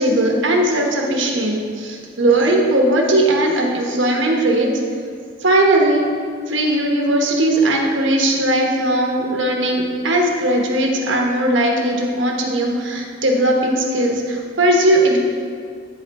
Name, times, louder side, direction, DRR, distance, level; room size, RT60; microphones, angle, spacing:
voice 1, 0.0-4.7 5.4-6.0 6.5-15.2, right 1 dB, 80° right, 0 dB, 1.1 m, -18 dB
9.1 x 5.0 x 4.1 m, 2.2 s
head